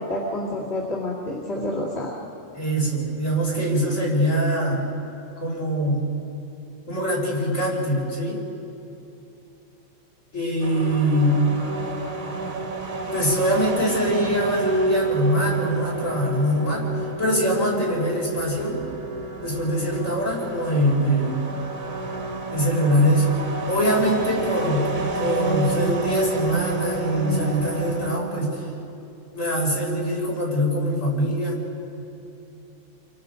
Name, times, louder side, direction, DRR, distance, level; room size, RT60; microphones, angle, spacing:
voice 1, 0.0-2.1, left 1 dB, 55° left, -4 dB, 2.9 m, -28 dB
voice 2, 2.5-4.8 5.4-6.0 6.9-8.4 10.3-11.4 13.1-16.9 17.2-18.8 19.4-21.3 22.5-23.3 23.7-24.9 25.2-28.7 29.3-31.6, equal, 70° left, -3 dB, 6.0 m, -23 dB
sound 1, 10.6-28.2, right 3 dB, 65° right, 2.0 m, -30 dB
30.0 x 24.0 x 5.2 m, 2.7 s
omnidirectional pair, 1.4 m